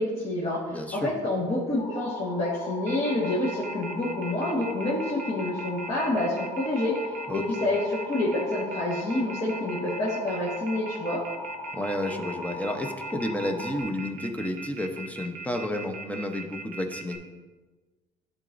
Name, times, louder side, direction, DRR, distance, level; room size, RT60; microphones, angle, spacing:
voice 1, 0.0-11.2, left 1 dB, 40° left, -7 dB, 1.6 m, -28 dB
voice 2, 0.7-1.1 7.3-7.4 11.7-17.2, left 1 dB, 10° left, 4 dB, 0.7 m, -31 dB
sound 1, 1.8-13.8, left 2 dB, 60° left, 2.0 m, -39 dB
Telephone, 2.9-17.2, right 4 dB, 55° right, 0.7 m, -39 dB
11.0 x 3.9 x 2.6 m, 1.3 s
cardioid pair, 110°, 17 cm